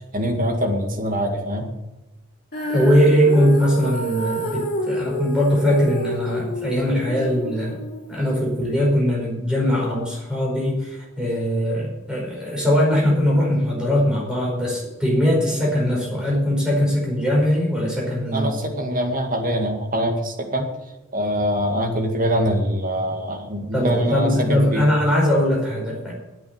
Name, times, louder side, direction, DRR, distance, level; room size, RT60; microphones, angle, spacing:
voice 1, 0.1-1.7 18.3-20.7 21.1-24.9, equal, 45° right, 2 dB, 2.1 m, -23 dB
Female singing, 2.5-8.7, equal, 50° left, 3.5 m, -28 dB
voice 2, 2.7-7.8 8.1-18.6 23.7-26.1, equal, 5° right, -4 dB, 5.0 m, -21 dB
9.1 x 8.4 x 8.8 m, 1.1 s
head